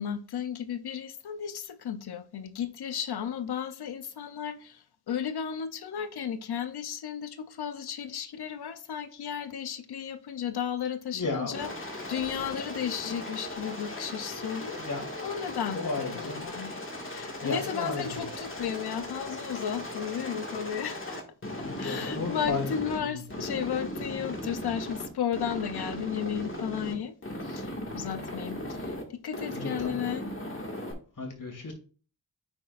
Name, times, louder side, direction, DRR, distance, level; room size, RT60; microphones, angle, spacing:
voice 1, 0.0-14.8 15.2-16.7 17.0-21.2 21.6-27.1 27.4-30.3, left 8 dB, 75° left, 0.6 m, -34 dB
voice 2, 11.1-11.6 14.8-15.1 15.7-16.4 17.1-18.0 21.6-22.7 23.0-23.1 29.5-30.0 31.2-31.7, left 3 dB, 55° left, 2.3 m, -33 dB
Aircraft, 11.5-23.0 23.3-25.1 25.3-26.9 27.2-29.0 29.3-30.9, left 1 dB, 35° left, 1.9 m, -37 dB
8.6 x 5.9 x 2.5 m
cardioid pair, 65°, 39 cm